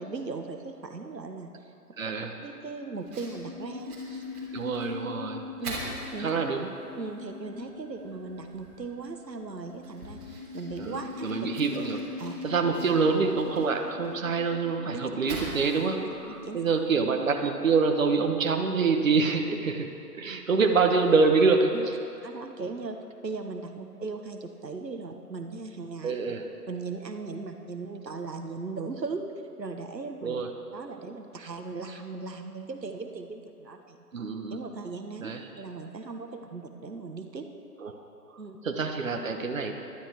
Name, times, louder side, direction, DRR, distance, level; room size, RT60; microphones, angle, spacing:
voice 1, 0.0-1.7 2.4-4.2 5.6-6.3 7.0-11.3 12.2-12.4 14.9-15.1 16.3-16.6 21.7-21.9 22.2-23.0 23.2-26.1 26.7-29.2 29.6-30.4 30.7-34.0 34.5-35.3 35.6-37.5 38.4-38.6, right 4 dB, 85° right, 5 dB, 1.3 m, -38 dB
voice 2, 2.0-2.4 4.5-5.4 6.2-6.7 10.8-12.0 12.4-21.9 26.0-26.5 30.2-30.5 34.1-34.6 35.2-35.4 37.8-38.0 38.6-39.7, right 4 dB, 55° right, 4 dB, 1.2 m, -26 dB
sound 1, 2.5-18.5, left 4 dB, 10° left, 2.1 m, -43 dB
Fire, 3.0-17.6, right 1 dB, 25° right, 3.1 m, -46 dB
15.5 x 12.0 x 4.6 m, 2.7 s
figure-of-eight pair, 155°, 49 cm